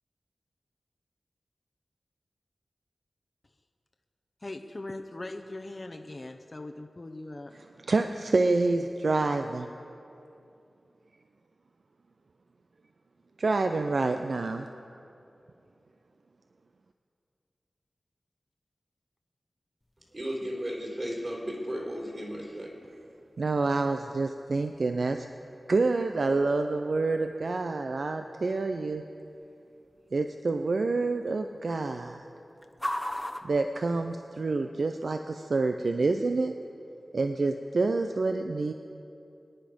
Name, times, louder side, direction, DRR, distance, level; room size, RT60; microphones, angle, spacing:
voice 1, 4.4-7.5, left 2 dB, 40° left, 4 dB, 0.8 m, -40 dB
voice 2, 7.5-9.7 13.4-14.7 23.4-25.3 25.7-29.0 30.1-32.3 33.4-36.6 37.1-38.7, right 3 dB, 70° right, 7 dB, 0.6 m, -27 dB
sound 1, 19.8-34.6, left 1 dB, 10° left, 0.9 m, -45 dB
voice 3, 20.1-22.7, equal, 45° right, -3 dB, 4.2 m, -34 dB
24.0 x 10.0 x 5.3 m, 2.7 s
wide cardioid pair, 65°, 0 cm